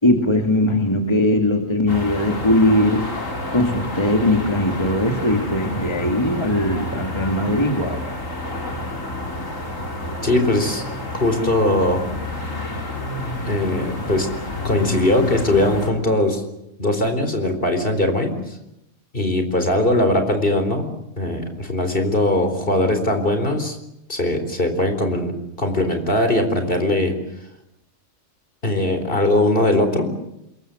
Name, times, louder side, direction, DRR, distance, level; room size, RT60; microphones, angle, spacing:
voice 1, 0.0-3.2 3.5-8.1, left 1 dB, 20° left, 4 dB, 2.3 m, -20 dB
sound 1, 1.9-15.9, left 1 dB, 80° left, 4.6 m, -29 dB
voice 2, 10.2-10.8 11.1-12.0 13.4-14.3 14.6-16.4 16.8-18.3 19.1-20.8 21.2-23.8 24.1-27.1 28.6-30.1, left 1 dB, 45° left, 7 dB, 4.4 m, -20 dB
27.5 x 22.5 x 7.9 m, 0.82 s
omnidirectional pair, 1.3 m